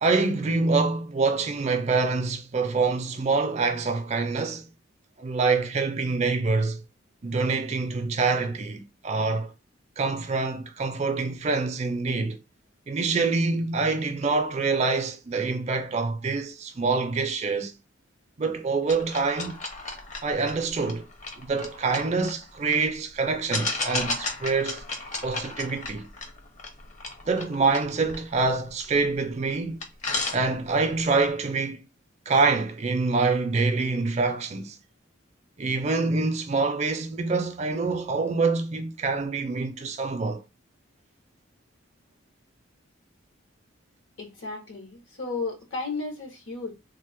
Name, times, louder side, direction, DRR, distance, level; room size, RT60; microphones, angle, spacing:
voice 1, 0.0-4.7 5.2-6.8 7.2-9.5 10.0-12.4 12.9-17.7 18.4-19.6 20.2-21.1 21.4-24.8 25.2-26.1 27.3-29.8 30.3-31.8 32.3-34.8 35.6-40.4, right 4 dB, 35° right, 0.4 m, -26 dB
sound 1, 18.9-22.8 23.5-29.1 29.5-29.6 29.8-30.9, left 3 dB, 35° left, 0.6 m, -34 dB
voice 2, 44.2-46.7, left 3 dB, 75° left, 1.1 m, -34 dB
3.2 x 2.1 x 3.3 m
head